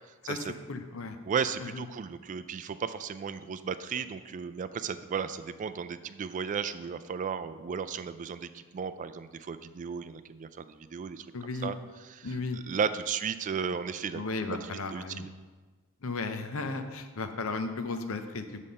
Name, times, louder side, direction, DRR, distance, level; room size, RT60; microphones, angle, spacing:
voice 1, 0.3-1.2 1.6-1.9 11.3-11.7 12.2-12.6 14.1-15.3 16.0-18.6, left 3 dB, 70° left, 7 dB, 0.7 m, -35 dB
voice 2, 1.2-11.3 11.6-11.8 12.2-14.2 14.5-15.3, right 6 dB, 35° right, 11 dB, 0.3 m, -34 dB
7.3 x 4.2 x 6.5 m, 1.3 s
head